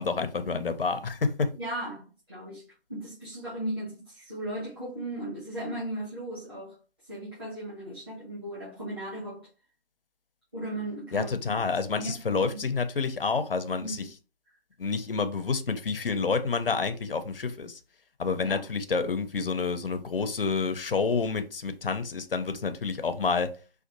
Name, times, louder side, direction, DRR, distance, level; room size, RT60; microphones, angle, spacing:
voice 1, 0.0-1.5 11.1-14.1 14.8-17.8 18.2-23.5, left 4 dB, 60° left, 0.5 m, -28 dB
voice 2, 1.6-2.6 2.9-6.7 7.1-9.5 10.5-11.6 11.9-12.6 13.8-14.1 18.4-18.6, right 1 dB, 20° right, 1.2 m, -37 dB
4.4 x 2.3 x 2.6 m
figure-of-eight pair, 160°, 32 cm